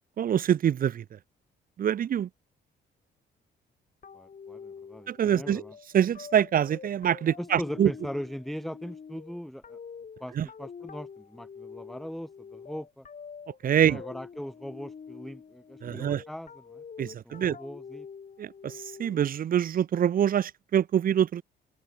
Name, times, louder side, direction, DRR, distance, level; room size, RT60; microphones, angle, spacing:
voice 1, 0.2-1.2 1.8-2.3 5.1-5.6 5.9-7.9 10.4-10.5 13.6-14.0 15.8-16.2 17.0-17.6 18.4-21.4, right 9 dB, 45° right, 0.5 m, -25 dB
sound 1, 4.0-19.4, left 6 dB, 40° left, 3.4 m, -46 dB
voice 2, 4.1-5.7 7.4-9.8 10.2-13.1 13.8-18.1, equal, ahead, 1.0 m, -40 dB
open air
cardioid pair, 90°, 20 cm